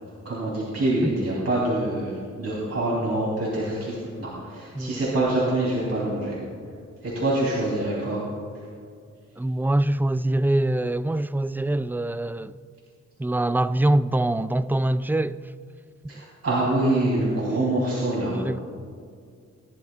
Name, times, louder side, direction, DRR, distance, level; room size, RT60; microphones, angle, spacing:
voice 1, 0.2-6.3 7.0-8.2 8.5-8.7 16.1-18.4, right 1 dB, 55° right, 3.3 m, -25 dB
voice 2, 9.4-12.6 13.2-15.5 18.3-18.6, right 1 dB, 5° right, 0.3 m, -24 dB
20.0 x 11.5 x 2.4 m
cardioid pair, 60°, 30 cm